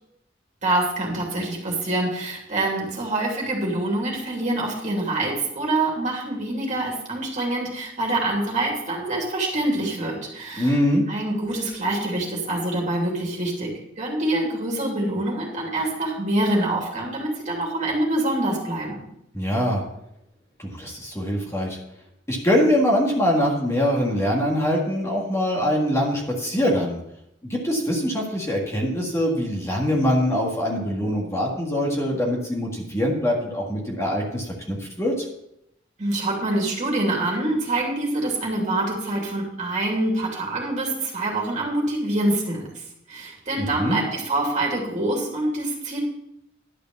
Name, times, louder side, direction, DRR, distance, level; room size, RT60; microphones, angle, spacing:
voice 1, 0.6-10.8 11.1-13.7 14.0-19.0 36.0-42.7 43.1-46.0, right 2 dB, 40° right, -2 dB, 2.8 m, -25 dB
voice 2, 10.6-11.1 19.3-19.8 20.6-21.8 22.3-27.0 27.4-35.3 43.6-44.0, equal, 15° left, -2 dB, 1.9 m, -23 dB
11.5 x 5.1 x 7.1 m, 0.80 s
head